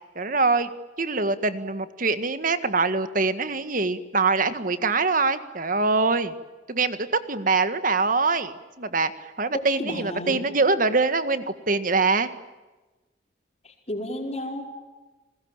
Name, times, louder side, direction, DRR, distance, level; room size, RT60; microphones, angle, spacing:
voice 1, 0.1-0.7 1.0-6.3 6.7-9.1 9.4-12.3, right 3 dB, 50° right, 11 dB, 1.8 m, -24 dB
voice 2, 9.8-10.4 13.6-14.6, left 1 dB, 35° left, 2 dB, 4.9 m, -32 dB
29.5 x 21.0 x 9.0 m, 1.1 s
head